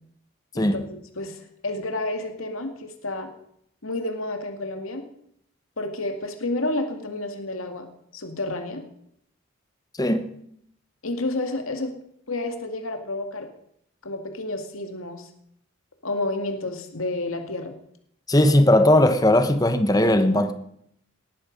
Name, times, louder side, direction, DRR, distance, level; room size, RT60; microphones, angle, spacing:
voice 1, 0.5-3.3 3.8-5.0 5.8-7.9 8.1-8.8 11.0-11.9 12.3-13.5 14.0-15.3 16.0-17.8, left 2 dB, 85° left, 2.2 m, -30 dB
voice 2, 10.0-10.3 18.3-20.5, left 1 dB, 20° left, 1.1 m, -18 dB
19.0 x 13.5 x 5.3 m
head